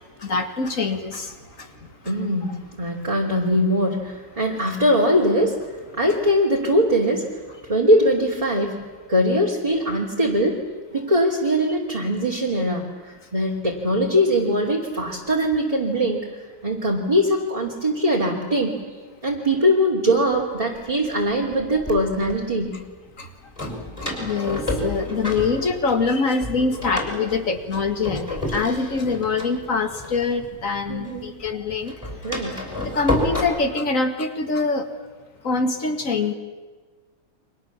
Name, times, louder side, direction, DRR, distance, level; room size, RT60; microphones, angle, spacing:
voice 1, 0.2-1.3 23.2-23.3 23.6-23.7 24.2-31.9 32.9-34.9 35.4-36.3, left 4 dB, 40° left, 7 dB, 2.2 m, -24 dB
voice 2, 2.0-5.6 6.0-7.3 7.6-8.8 9.1-10.6 10.9-16.3 16.6-18.8 19.2-22.7 30.9-31.3 32.2-32.6, equal, 15° right, -3 dB, 2.9 m, -21 dB
Door, 20.4-20.5 21.2-22.4 23.6-26.1 26.4-30.9 31.2-33.4, left 1 dB, 15° left, 5.8 m, -29 dB
30.0 x 25.0 x 7.4 m, 1.4 s
omnidirectional pair, 2.2 m